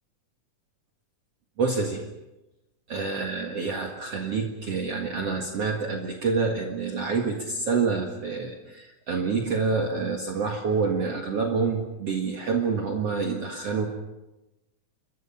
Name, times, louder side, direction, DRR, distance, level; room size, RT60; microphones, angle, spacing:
voice 1, 1.6-2.0 2.9-13.9, right 4 dB, 50° right, 1 dB, 2.6 m, -27 dB
28.5 x 23.5 x 5.8 m, 1.0 s
omnidirectional pair, 3.9 m